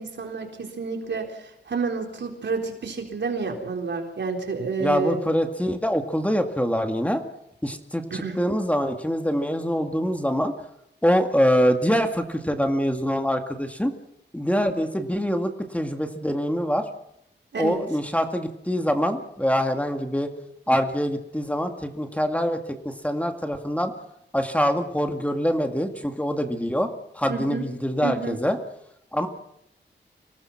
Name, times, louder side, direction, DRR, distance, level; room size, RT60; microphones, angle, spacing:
voice 1, 0.0-1.3 1.7-5.2 8.1-8.4 17.5-17.8 27.3-27.7 28.0-28.4, right 4 dB, 70° right, 3 dB, 4.0 m, -29 dB
voice 2, 4.8-7.2 7.6-10.5 11.0-13.9 14.3-16.8 17.6-20.3 20.7-22.6 22.8-23.9 24.3-26.9 27.1-28.6 29.1-29.3, equal, 5° left, 5 dB, 2.1 m, -24 dB
25.5 x 18.5 x 6.0 m, 0.79 s
wide cardioid pair, 95°, 19 cm